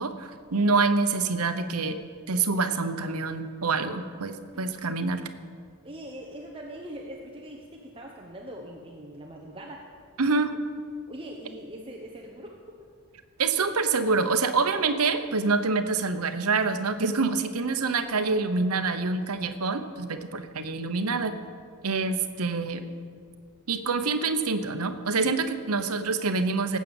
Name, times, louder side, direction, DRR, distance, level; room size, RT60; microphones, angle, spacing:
voice 1, 0.0-2.0 2.3-5.3 10.2-10.5 13.4-21.3 21.8-22.8 23.7-26.8, right 4 dB, 85° right, 9 dB, 1.0 m, -26 dB
voice 2, 5.8-9.8 11.1-12.9 17.8-17.9 22.1-22.3, right 1 dB, 25° right, -1 dB, 1.2 m, -42 dB
19.0 x 8.5 x 7.2 m, 2.1 s
head